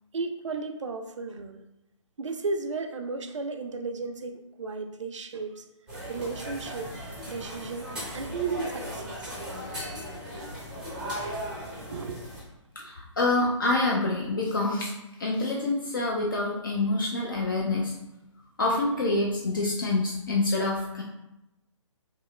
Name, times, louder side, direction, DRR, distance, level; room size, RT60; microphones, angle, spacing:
voice 1, 0.1-1.6 2.2-5.6 6.1-6.9 7.3-9.3 11.8-12.2, right 4 dB, 70° right, 6 dB, 0.4 m, -34 dB
sound 1, 5.9-12.4, equal, 5° right, 0.6 m, -37 dB
voice 2, 12.8-14.9 15.2-17.9 18.6-21.0, left 2 dB, 40° left, -2 dB, 0.4 m, -26 dB
3.0 x 2.8 x 2.2 m, 0.92 s
figure-of-eight pair, 140°, 16 cm